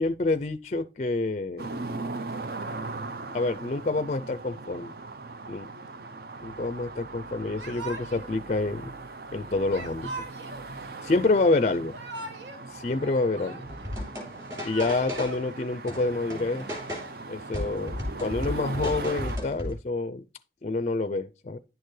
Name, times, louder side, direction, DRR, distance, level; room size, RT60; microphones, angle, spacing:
voice 1, 0.0-1.7 3.3-4.9 5.5-5.7 6.4-8.9 9.3-10.3 11.0-12.0 12.7-13.6 14.6-16.7 17.3-20.2 20.6-21.6, left 3 dB, 40° left, 0.4 m, -27 dB
sound 1, 1.6-19.4, right 3 dB, 55° right, 0.6 m, -39 dB
Yell / Crying sobbing, 7.5-8.3 9.7-10.7 11.7-12.6 12.9-13.9 14.4-15.4, right 2 dB, 80° right, 1.8 m, -40 dB
sound 2, 13.6-15.5 15.9-17.2 17.5-19.7, left 1 dB, 20° right, 3.3 m, -35 dB
10.5 x 6.6 x 3.2 m
head